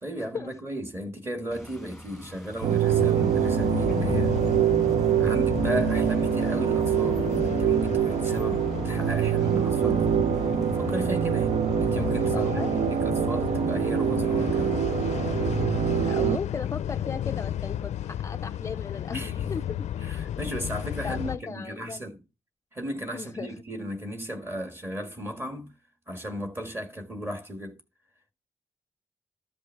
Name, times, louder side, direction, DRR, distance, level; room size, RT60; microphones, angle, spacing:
voice 1, 0.0-4.3 5.0-10.1 10.7-14.8 19.1-19.5 20.0-22.2 22.7-25.7 26.1-27.8, equal, 20° right, 1.6 m, -35 dB
sound 1, 1.5-15.6, left 1 dB, ahead, 1.3 m, -48 dB
sound 2, 2.6-16.4, right 10 dB, 70° right, 0.4 m, -25 dB
sound 3, 2.9-21.4, left 10 dB, 90° left, 0.5 m, -32 dB
voice 2, 12.3-12.8 16.0-19.2 19.5-19.6 21.0-22.0 23.1-23.6, left 5 dB, 25° left, 0.4 m, -36 dB
13.5 x 5.3 x 4.5 m
wide cardioid pair, 180°, 11 cm